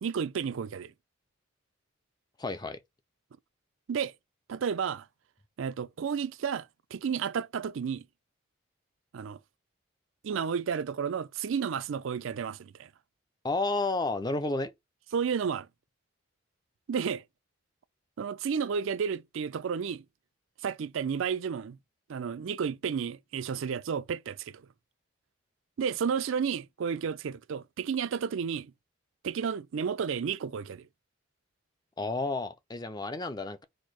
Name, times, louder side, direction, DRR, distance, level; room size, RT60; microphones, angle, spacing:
voice 1, 0.0-0.9 3.9-4.1 4.5-5.1 5.6-8.1 9.1-9.4 10.2-12.9 15.1-15.7 16.9-17.2 18.2-20.0 20.6-21.8 22.1-24.7 25.8-28.7 29.2-30.9, right 6 dB, 75° right, 0.4 m, -32 dB
voice 2, 2.4-2.8 13.4-14.7 32.0-33.6, left 2 dB, 20° left, 0.5 m, -31 dB
4.2 x 2.7 x 4.5 m
head